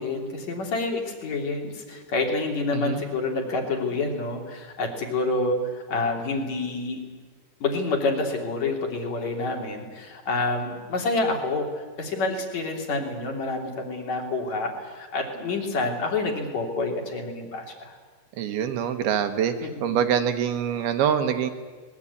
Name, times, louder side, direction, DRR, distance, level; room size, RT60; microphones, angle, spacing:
voice 1, 0.0-7.0 7.6-17.9 19.6-20.0, left 3 dB, 45° left, 2 dB, 4.0 m, -28 dB
voice 2, 18.4-21.5, right 8 dB, 70° right, 7 dB, 2.9 m, -25 dB
24.5 x 21.0 x 8.6 m, 1.4 s
omnidirectional pair, 5.0 m